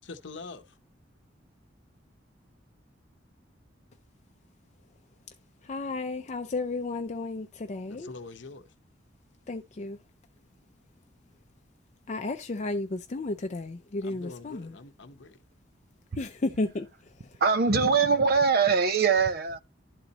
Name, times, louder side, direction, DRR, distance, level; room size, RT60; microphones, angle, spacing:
voice 1, 0.0-0.8 7.9-8.7 14.0-15.4, left 3 dB, 70° left, 0.8 m, -44 dB
voice 2, 5.6-8.1 9.5-10.0 12.1-14.7 16.2-16.9 17.2-17.4, left 2 dB, 40° left, 0.5 m, -33 dB
voice 3, 17.4-19.6, right 5 dB, 55° right, 0.6 m, -22 dB
12.0 x 4.0 x 2.8 m
head